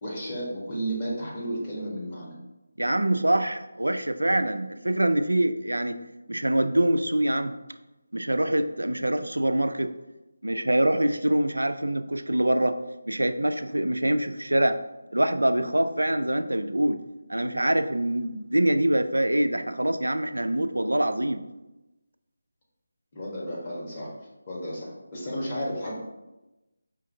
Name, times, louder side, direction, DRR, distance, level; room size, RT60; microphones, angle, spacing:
voice 1, 0.0-2.4 23.1-24.1 24.5-25.9, equal, 30° left, -6 dB, 1.2 m, -33 dB
voice 2, 2.8-6.0 6.3-7.5 8.1-9.9 10.4-12.8 13.1-14.8 15.1-17.0 17.3-21.4, right 1 dB, 90° right, 9 dB, 0.3 m, -24 dB
5.0 x 2.6 x 2.6 m, 1.0 s
figure-of-eight pair, 160°, 0 cm